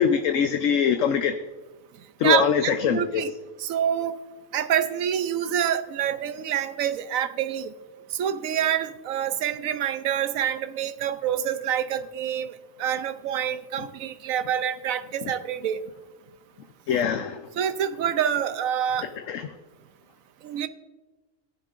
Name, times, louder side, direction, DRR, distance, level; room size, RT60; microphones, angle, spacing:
voice 1, 0.0-1.3 2.2-3.2 16.9-17.5 19.3-19.5, left 7 dB, 70° left, 7 dB, 1.0 m, -23 dB
voice 2, 2.2-3.3 3.6-4.2 4.5-7.7 8.1-12.5 12.8-15.8 17.6-19.1 20.4-20.7, right 9 dB, 80° right, 11 dB, 1.0 m, -26 dB
16.0 x 10.5 x 2.5 m, 1.2 s
omnidirectional pair, 1.4 m